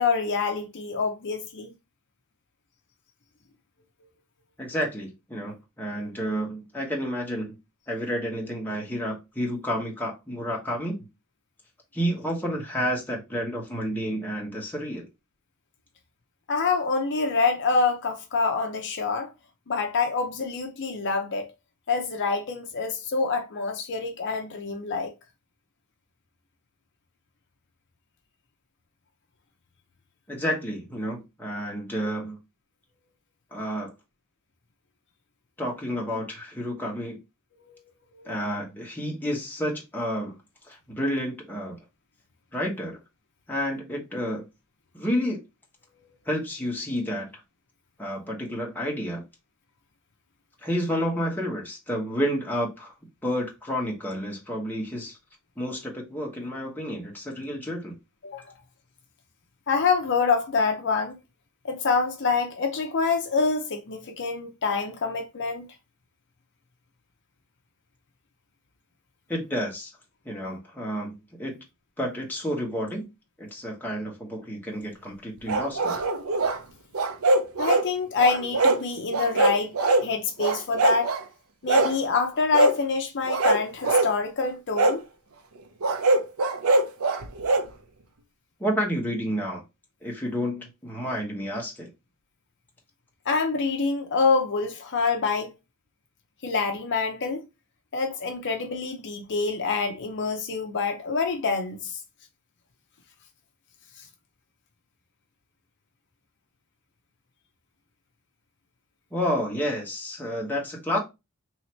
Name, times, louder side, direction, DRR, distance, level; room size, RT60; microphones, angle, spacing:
voice 1, 0.0-1.7 16.5-19.3 19.7-21.5 21.9-25.1 37.7-37.8 38.1-38.4 58.2-58.5 59.7-61.2 61.6-65.7 77.6-79.8 80.0-81.2 81.6-85.0 93.3-95.5 96.4-97.5 97.9-102.0 104.0-104.1, left 4 dB, 55° left, 0.7 m, -26 dB
voice 2, 4.6-7.5 7.9-11.0 11.9-15.1 30.3-32.4 33.5-33.9 35.6-37.2 38.2-40.3 40.7-41.8 42.5-43.0 43.5-44.4 44.9-45.4 46.3-47.3 48.0-49.2 50.6-52.9 53.2-55.2 55.6-57.9 69.3-69.9 70.2-71.6 72.0-73.1 73.4-75.9 88.6-89.6 90.0-91.9 109.1-111.0, equal, 10° left, 1.2 m, -30 dB
sound 1, 75.5-76.6 76.9-77.9 78.2-78.8 79.1-80.1 80.4-81.2 81.7-82.0 82.5-82.8 83.3-84.1 84.7-85.0 85.8-87.7, right 2 dB, 75° right, 0.6 m, -22 dB
3.2 x 2.8 x 4.3 m
head